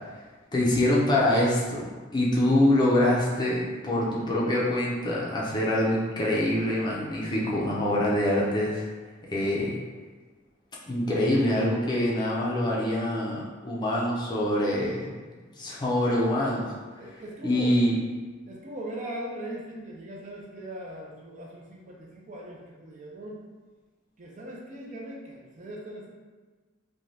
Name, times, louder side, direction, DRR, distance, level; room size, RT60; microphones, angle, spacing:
voice 1, 0.5-8.8 9.3-9.8 10.9-15.1 15.6-16.7 17.4-18.0, left 1 dB, 20° left, -5 dB, 0.5 m, -25 dB
voice 2, 17.0-17.8 18.5-23.4 24.2-26.1, right 1 dB, 40° right, -2 dB, 0.4 m, -40 dB
2.6 x 2.2 x 3.1 m, 1.4 s
head